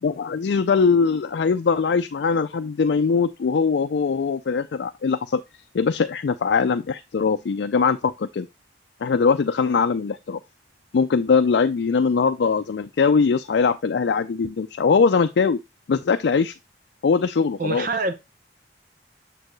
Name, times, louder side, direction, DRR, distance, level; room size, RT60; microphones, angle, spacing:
voice 1, 0.0-5.4 5.7-8.5 9.0-10.4 10.9-15.6 15.9-16.5 17.0-17.9, left 5 dB, 75° left, 0.4 m, -21 dB
voice 2, 17.6-18.1, right 3 dB, 50° right, 1.0 m, -25 dB
6.9 x 4.5 x 3.1 m
head